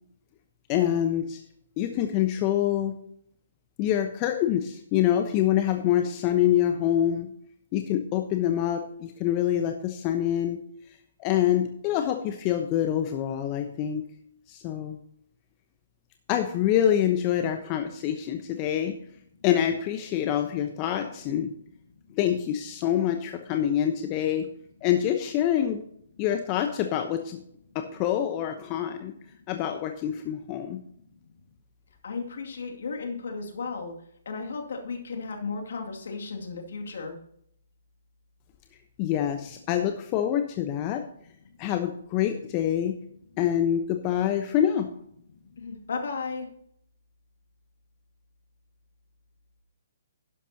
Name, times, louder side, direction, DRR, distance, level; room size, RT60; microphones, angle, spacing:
voice 1, 0.7-1.4 1.8-2.9 3.8-7.3 7.7-10.6 11.2-14.1 14.5-15.0 16.3-18.9 19.4-21.5 22.1-24.5 24.8-25.8 26.2-27.4 27.7-29.1 29.5-30.8 39.0-41.0 41.6-43.0 43.4-44.9, left 10 dB, 30° left, 6 dB, 0.9 m, -26 dB
voice 2, 32.0-33.9 34.3-37.2 41.4-41.7 45.3-46.5, left 4 dB, 65° left, 3 dB, 2.4 m, -35 dB
11.5 x 11.0 x 2.9 m, 0.68 s
figure-of-eight pair, 135°, 0 cm